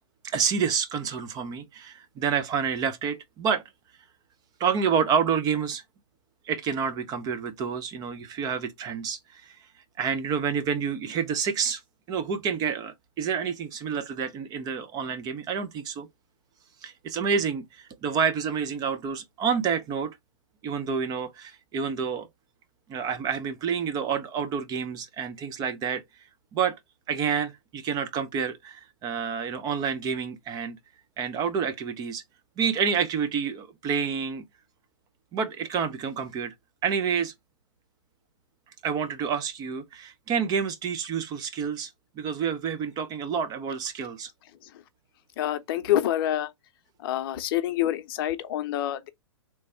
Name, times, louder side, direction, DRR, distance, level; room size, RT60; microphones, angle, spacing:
voice 1, 0.2-3.6 4.6-5.8 6.5-9.4 10.0-11.8 12.1-16.1 16.8-20.1 20.6-22.3 22.9-26.0 26.5-26.8 27.1-30.8 31.2-32.2 32.6-34.4 35.3-36.5 36.8-37.3 38.8-41.9 42.2-44.3, right 6 dB, 25° right, 0.6 m, -28 dB
voice 2, 45.4-46.5 47.0-49.1, left 12 dB, 45° left, 0.7 m, -27 dB
3.3 x 3.2 x 4.2 m
hypercardioid pair, 125°, 17 cm